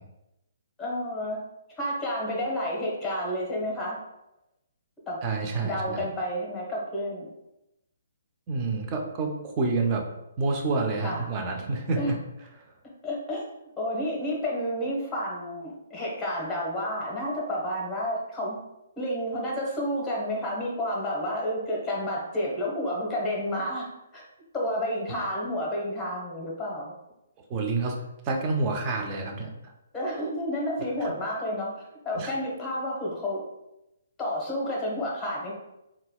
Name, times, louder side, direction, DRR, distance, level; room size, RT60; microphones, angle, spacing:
voice 1, 0.8-1.4 1.8-4.0 5.1-5.2 5.6-7.3 11.0-11.3 12.0-12.1 13.0-13.4 13.8-18.6 19.0-23.9 24.1-24.2 24.5-26.9 29.9-33.4 34.2-35.5, equal, 10° left, -3 dB, 1.1 m, -30 dB
voice 2, 5.2-6.1 8.5-10.0 10.4-12.0 27.5-28.0 28.2-29.5 31.0-31.1 32.1-32.3, right 3 dB, 30° right, 2 dB, 0.6 m, -28 dB
4.0 x 2.3 x 2.3 m, 0.90 s
hypercardioid pair, 140°, 0 cm